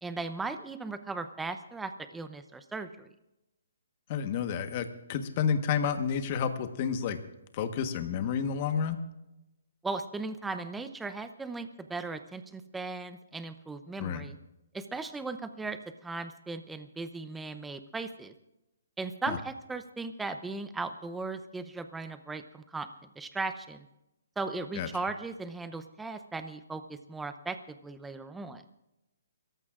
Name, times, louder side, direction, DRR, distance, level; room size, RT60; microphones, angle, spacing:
voice 1, 0.0-3.1 9.8-14.4 14.7-18.3 19.0-22.9 23.2-23.9 24.4-28.6, right 3 dB, 5° right, 10 dB, 0.6 m, -37 dB
voice 2, 4.1-7.3 7.5-9.0 14.0-14.2 19.3-19.4 24.7-24.9, left 7 dB, 30° left, 9 dB, 1.2 m, -30 dB
29.5 x 15.0 x 2.5 m, 0.91 s
hypercardioid pair, 165°, 0 cm